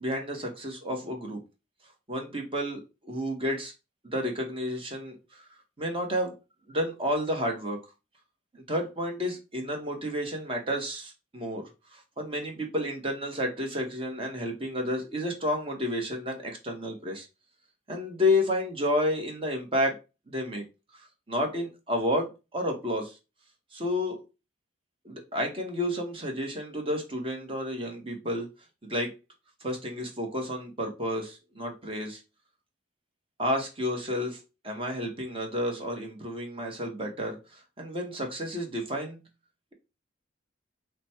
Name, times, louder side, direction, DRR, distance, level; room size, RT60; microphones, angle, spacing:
voice 1, 0.0-1.4 2.1-2.8 3.1-3.7 4.0-5.4 5.8-6.4 6.7-7.8 8.5-11.6 11.9-17.3 17.9-20.0 20.3-20.6 21.3-23.1 23.7-24.2 25.0-28.5 28.8-29.1 29.6-32.2 33.4-34.4 34.6-37.4 37.8-39.2, left 1 dB, 30° right, 1.2 m, -31 dB
5.0 x 2.2 x 4.4 m
head